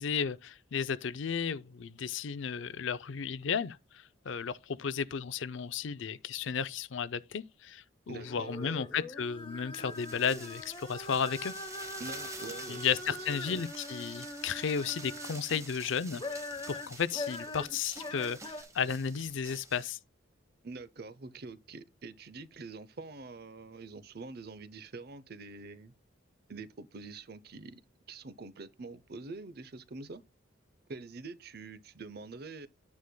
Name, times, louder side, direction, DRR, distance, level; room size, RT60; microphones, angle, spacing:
voice 1, 0.0-11.5 12.7-20.0, left 6 dB, 65° left, 0.5 m, -34 dB
voice 2, 8.1-8.9 12.0-13.2 13.5-13.6 20.6-25.9 26.5-27.8 28.1-30.2 30.9-32.7, right 3 dB, 50° right, 0.6 m, -45 dB
sound 1, 8.2-15.6 16.1-18.6, left 2 dB, 25° left, 1.3 m, -42 dB
sound 2, 9.8-19.9, right 3 dB, 15° right, 1.1 m, -48 dB
9.8 x 9.6 x 2.2 m
head